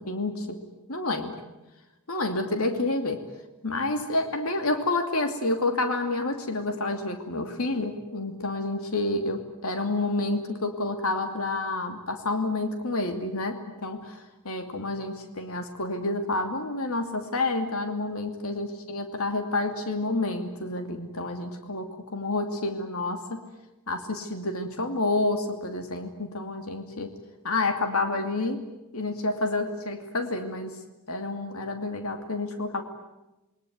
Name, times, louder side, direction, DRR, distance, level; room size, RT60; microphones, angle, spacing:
voice 1, 0.1-0.6 0.9-1.4 2.1-3.2 3.6-23.5 23.9-27.1 27.4-28.6 28.9-30.8 31.1-32.8, left 2 dB, 80° left, 6 dB, 2.6 m, -29 dB
28.5 x 22.0 x 9.4 m, 1.0 s
head